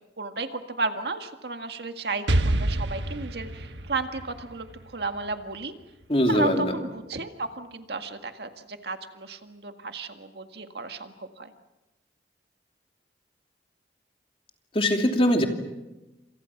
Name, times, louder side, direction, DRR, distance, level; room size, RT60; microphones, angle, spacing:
voice 1, 0.2-5.7 6.3-11.5, right 3 dB, 65° right, 7 dB, 1.9 m, -33 dB
Explosion, 2.3-6.0, right 1 dB, 80° right, 1.3 m, -28 dB
voice 2, 6.1-6.7 14.7-15.4, equal, 30° left, 4 dB, 2.8 m, -22 dB
28.5 x 27.0 x 6.0 m, 1.0 s
head